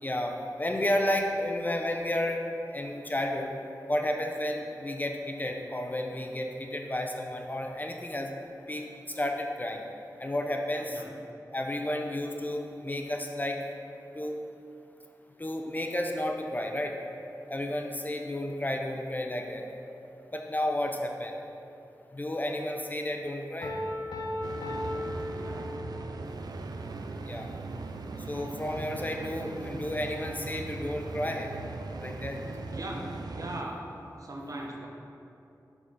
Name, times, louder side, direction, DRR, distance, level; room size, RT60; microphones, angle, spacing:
voice 1, 0.0-2.4 2.7-3.5 3.9-8.3 8.7-9.8 10.2-11.0 11.5-13.6 14.1-14.4 15.4-16.9 17.5-19.6 20.3-21.4 22.1-23.7 27.3-27.5 28.3-31.5 32.0-32.4, left 1 dB, 25° left, 3 dB, 0.5 m, -32 dB
Piano, 23.6-26.2, left 1 dB, 85° left, 0.8 m, -36 dB
sound 1, 24.4-33.6, right 3 dB, 70° right, 0.4 m, -39 dB
voice 2, 25.3-25.8 32.7-33.0 33.3-33.9 34.2-34.9, right 1 dB, 55° right, -1 dB, 0.9 m, -39 dB
6.2 x 5.6 x 3.7 m, 2.7 s
wide cardioid pair, 70°, 7 cm